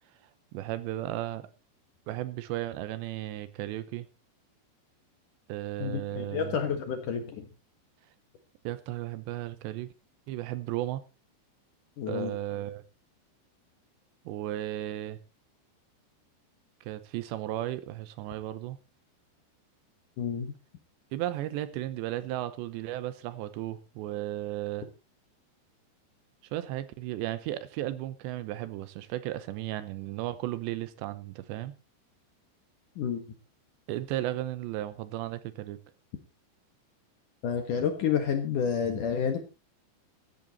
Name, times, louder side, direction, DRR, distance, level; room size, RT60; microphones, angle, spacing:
voice 1, 0.5-1.5 2.1-4.1 5.5-6.6 8.6-9.9 10.3-11.0 12.1-12.8 14.3-15.2 16.8-18.8 21.1-24.9 26.5-31.7 33.9-35.8, right 14 dB, 80° right, 3.0 m, -35 dB
voice 2, 5.8-7.5 12.0-12.3 20.2-20.5 33.0-33.2 37.4-39.4, left 7 dB, 60° left, 2.4 m, -29 dB
15.5 x 11.5 x 4.1 m
omnidirectional pair, 5.2 m